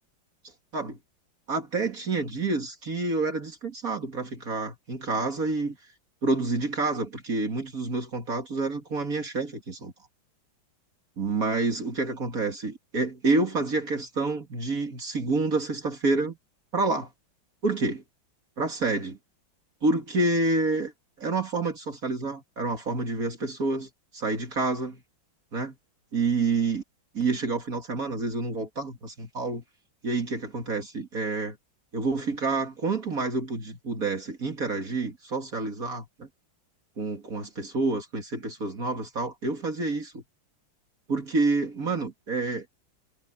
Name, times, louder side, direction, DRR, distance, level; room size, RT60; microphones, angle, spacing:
voice 1, 1.5-5.8 6.2-9.9 11.2-16.4 16.7-17.1 17.6-18.0 18.6-19.2 19.8-20.9 21.2-25.0 25.5-25.7 26.1-26.8 27.1-29.6 30.0-31.6 31.9-36.3 37.0-40.2 41.1-42.7, right 3 dB, 45° right, 2.7 m, -28 dB
omnidirectional pair, 2.2 m